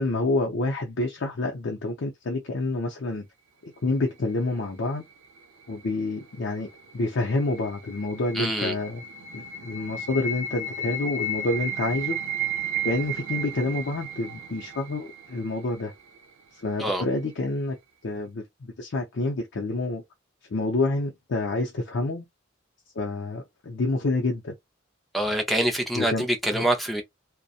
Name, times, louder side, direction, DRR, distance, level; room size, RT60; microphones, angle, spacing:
voice 1, 0.0-3.3 3.6-5.0 5.7-6.7 6.9-9.0 9.3-12.2 12.8-15.9 16.5-17.8 18.0-20.0 20.5-22.2 22.9-24.5 25.9-26.3 26.5-26.7, left 2 dB, 65° left, 0.5 m, -28 dB
sound 1, 6.8-15.8, right 3 dB, 80° right, 0.6 m, -33 dB
voice 2, 8.4-8.7 16.8-17.0 25.1-27.0, right 1 dB, ahead, 0.4 m, -25 dB
2.7 x 2.1 x 2.3 m
head